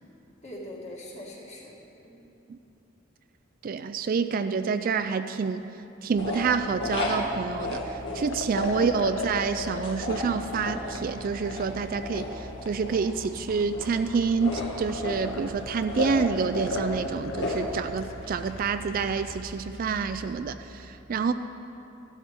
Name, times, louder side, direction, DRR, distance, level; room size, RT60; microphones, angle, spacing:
voice 1, 0.4-1.8 2.0-2.2, left 1 dB, 35° left, -3 dB, 2.0 m, -42 dB
voice 2, 3.6-5.6 6.0-21.3, right 5 dB, 45° right, 10 dB, 0.3 m, -28 dB
sound 1, 6.1-20.3, left 1 dB, 65° left, 1.9 m, -35 dB
Liquid, 8.3-19.5, left 3 dB, 85° left, 0.9 m, -40 dB
15.0 x 11.5 x 3.5 m, 2.9 s
head